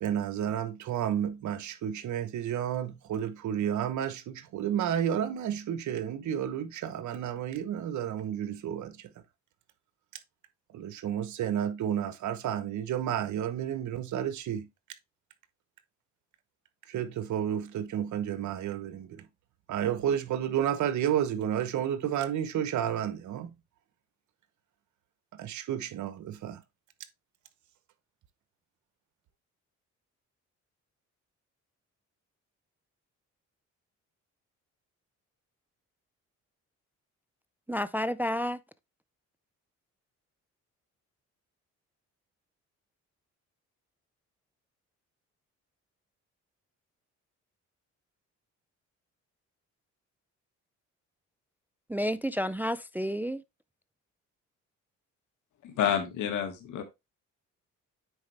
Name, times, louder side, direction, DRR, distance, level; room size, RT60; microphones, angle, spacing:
voice 1, 0.0-9.1 10.7-14.7 16.9-19.3 19.7-23.5 25.3-26.6, right 10 dB, 70° right, 1.0 m, -31 dB
voice 2, 37.7-38.6 51.9-53.4, equal, 5° right, 0.4 m, -30 dB
voice 3, 55.6-56.8, left 9 dB, 80° left, 1.9 m, -29 dB
9.5 x 4.3 x 3.3 m
cardioid pair, 90°, 30 cm